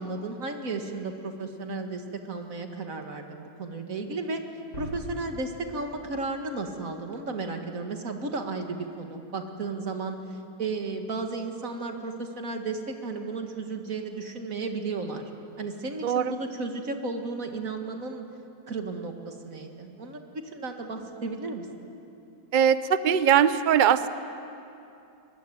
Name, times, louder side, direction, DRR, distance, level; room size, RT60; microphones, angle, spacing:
voice 1, 0.0-4.4 4.8-10.2 10.6-15.3 15.6-18.2 18.7-21.9, right 3 dB, 50° right, 4 dB, 2.2 m, -34 dB
sound 1, 4.7-7.2, equal, 50° left, 8.3 m, -43 dB
voice 2, 16.0-16.3 22.5-24.1, right 8 dB, 80° right, 13 dB, 0.4 m, -21 dB
23.5 x 20.5 x 9.5 m, 2.7 s
omnidirectional pair, 1.9 m